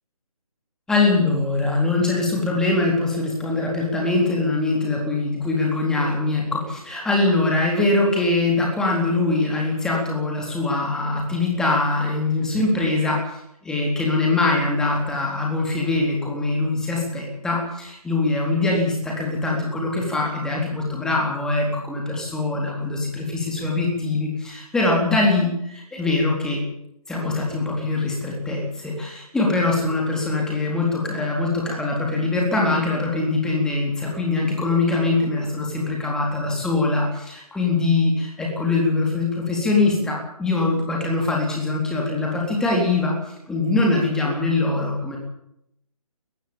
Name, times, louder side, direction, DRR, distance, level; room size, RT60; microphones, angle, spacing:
voice 1, 0.9-13.4 13.6-26.6 27.1-43.1 43.5-45.2, left 3 dB, 5° left, -1 dB, 3.8 m, -22 dB
19.5 x 15.5 x 8.8 m, 0.78 s
figure-of-eight pair, 145°, 19 cm